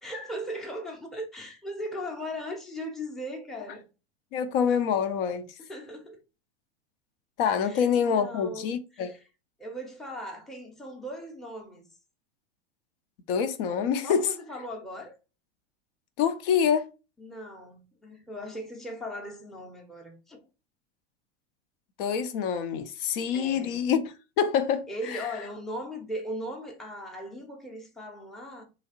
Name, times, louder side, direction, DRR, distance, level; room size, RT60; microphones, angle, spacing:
voice 1, 0.0-3.9 5.7-6.2 7.6-8.7 9.0-9.2 9.6-11.9 14.0-15.1 17.2-20.4 23.3-23.8 24.9-28.6, equal, ahead, 0.6 m, -38 dB
voice 2, 4.3-5.5 7.4-9.2 13.3-14.3 16.2-16.9 22.0-25.3, left 7 dB, 55° left, 0.5 m, -26 dB
3.1 x 2.9 x 2.8 m
hypercardioid pair, 95°, 35 cm